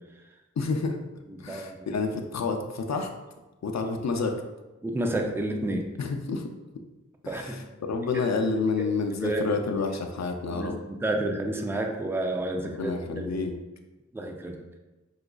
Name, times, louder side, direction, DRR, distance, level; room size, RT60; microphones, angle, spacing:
voice 1, 0.6-1.0 1.4-3.1 3.6-4.4 6.0-6.4 7.3-10.8 12.6-13.6, left 4 dB, 65° left, 4 dB, 0.4 m, -29 dB
voice 2, 1.3-2.0 4.8-5.9 7.3-7.6 8.1-8.2 8.8-9.6 10.5-13.4 14.1-14.6, right 1 dB, 10° right, 2 dB, 0.4 m, -31 dB
4.9 x 2.3 x 2.3 m, 1.1 s
wide cardioid pair, 55°, 30 cm